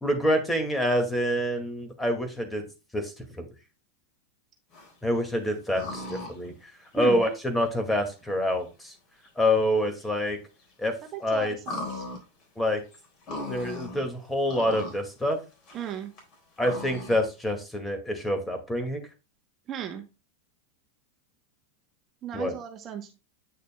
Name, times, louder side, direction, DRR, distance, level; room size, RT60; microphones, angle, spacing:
voice 1, 0.0-2.6 2.9-3.4 5.0-8.9 9.4-10.4 10.8-10.9 11.2-11.6 12.6-12.8 13.5-15.4 16.6-19.0 22.3-22.6, equal, 10° left, 5 dB, 2.1 m, -27 dB
sound 1, 4.7-5.2 5.7-6.5 6.9-7.0 7.9-8.0 9.2-9.3 9.6-9.7 9.9-10.0 10.6-10.9 11.6-14.1 14.4-15.0 15.3-17.2, left 2 dB, 45° left, 4.0 m, -38 dB
voice 2, 11.1-12.1 15.7-16.1 19.7-20.1 22.2-23.1, right 8 dB, 35° right, 5 dB, 1.0 m, -35 dB
9.0 x 6.5 x 2.3 m, 0.29 s
hypercardioid pair, 95°, 0 cm